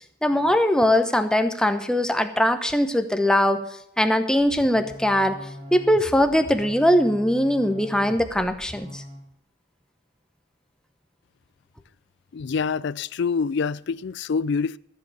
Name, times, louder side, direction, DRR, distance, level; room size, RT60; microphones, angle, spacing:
voice 1, 0.2-3.6 4.0-5.4 5.7-9.0, left 1 dB, 5° left, 0.9 m, -21 dB
sound 1, 4.4-9.3, left 1 dB, 25° right, 2.6 m, -41 dB
voice 2, 12.3-14.8, left 5 dB, 55° left, 0.4 m, -26 dB
14.5 x 7.7 x 7.0 m
head